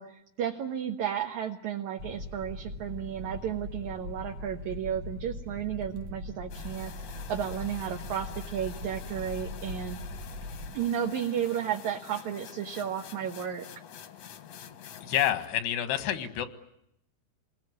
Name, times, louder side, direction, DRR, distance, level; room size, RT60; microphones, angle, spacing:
voice 1, 0.0-6.9 7.3-10.0 10.7-13.7, right 9 dB, 60° right, 2 dB, 2.3 m, -33 dB
sound 1, 2.0-10.8, left 1 dB, 80° right, 1.1 m, -41 dB
sound 2, 6.5-15.5, left 9 dB, 60° left, 1.8 m, -47 dB
voice 2, 15.0-16.5, left 11 dB, 90° left, 10 dB, 3.7 m, -28 dB
28.5 x 20.5 x 9.5 m, 0.79 s
omnidirectional pair, 4.6 m